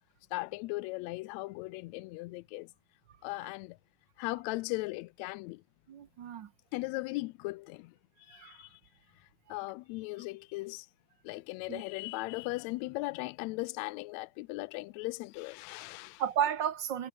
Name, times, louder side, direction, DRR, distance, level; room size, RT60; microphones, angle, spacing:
voice 1, 0.3-2.7 3.2-3.8 4.2-5.6 6.7-7.9 8.3-8.8 9.5-10.9 11.2-16.2, left 22 dB, 80° left, 1.7 m, -38 dB
voice 2, 5.9-6.5 8.3-8.6 11.7-11.8 16.2-17.1, right 9 dB, 55° right, 1.3 m, -33 dB
omnidirectional pair, 3.4 m